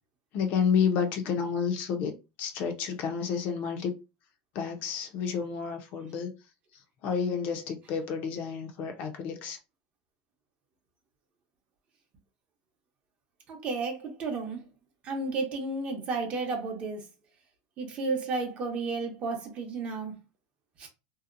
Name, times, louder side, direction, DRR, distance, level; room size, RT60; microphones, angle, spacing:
voice 1, 0.3-2.1 2.4-3.9 4.5-6.3 7.0-9.6, left 6 dB, 45° left, 0.5 m, -30 dB
voice 2, 13.5-14.6 15.0-17.1 17.8-20.1 20.8-20.9, right 3 dB, 35° right, 0.7 m, -32 dB
2.7 x 2.1 x 2.5 m
supercardioid pair, 140°, 4 cm